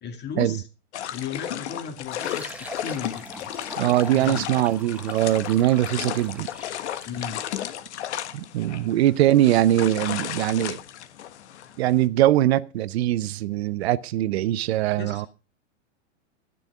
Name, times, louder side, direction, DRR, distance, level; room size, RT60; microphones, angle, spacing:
voice 1, 0.0-0.7 1.1-3.5 4.1-4.5 7.0-7.4 8.8-8.9 15.0-15.3, left 7 dB, 30° left, 2.4 m, -35 dB
sound 1, 0.9-12.1, left 11 dB, 65° left, 1.5 m, -34 dB
Fill (with liquid), 2.0-7.2, right 1 dB, 5° right, 1.1 m, -43 dB
voice 2, 3.8-6.5 8.3-10.8 11.8-15.3, right 13 dB, 60° right, 0.8 m, -22 dB
12.5 x 9.9 x 4.8 m
hypercardioid pair, 110°, 36 cm